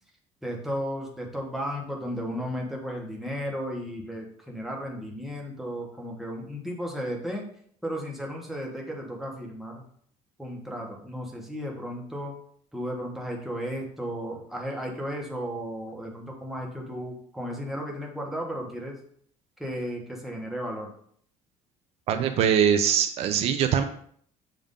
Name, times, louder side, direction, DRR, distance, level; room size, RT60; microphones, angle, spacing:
voice 1, 0.4-7.5 7.8-9.8 10.4-12.4 12.7-19.0 19.6-20.9, equal, ahead, -1 dB, 1.0 m, -34 dB
voice 2, 22.1-23.8, right 8 dB, 50° right, 7 dB, 0.5 m, -22 dB
7.4 x 2.6 x 5.1 m, 0.62 s
cardioid pair, 175°, 13 cm